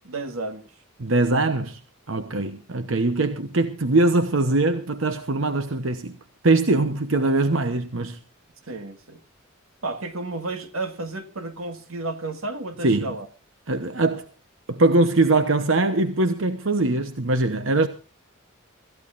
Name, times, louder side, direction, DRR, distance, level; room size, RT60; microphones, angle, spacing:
voice 1, 0.0-0.7 8.7-9.2 9.8-13.3, right 2 dB, 85° right, 1.8 m, -32 dB
voice 2, 1.0-1.8 2.1-6.2 6.4-8.2 12.8-13.1 13.7-14.3 14.7-17.9, right 2 dB, 65° right, 1.0 m, -22 dB
25.5 x 14.5 x 2.6 m
head